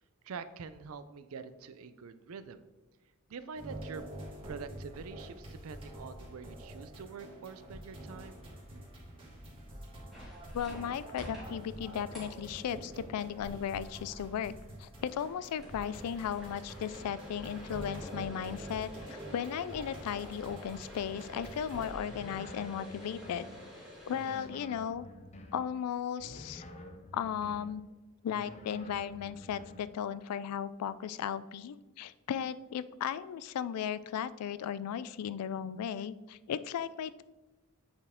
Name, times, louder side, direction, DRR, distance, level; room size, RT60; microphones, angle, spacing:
voice 1, 0.2-2.6 3.3-4.1 4.4-8.4, right 5 dB, 65° right, 12 dB, 0.4 m, -45 dB
sound 1, 3.5-21.9, right 1 dB, 25° right, 1.7 m, -47 dB
sound 2, 10.1-24.5, equal, ahead, 2.1 m, -50 dB
voice 2, 10.5-14.5 14.8-23.5 24.1-25.1 25.5-26.7 27.1-27.8 28.2-37.2, left 8 dB, 90° left, 17 dB, 0.3 m, -36 dB
sound 3, 22.0-23.6 24.1-25.7 26.2-27.8 28.3-29.9, left 1 dB, 30° left, 0.6 m, -49 dB
7.8 x 4.3 x 3.6 m, 1.1 s
head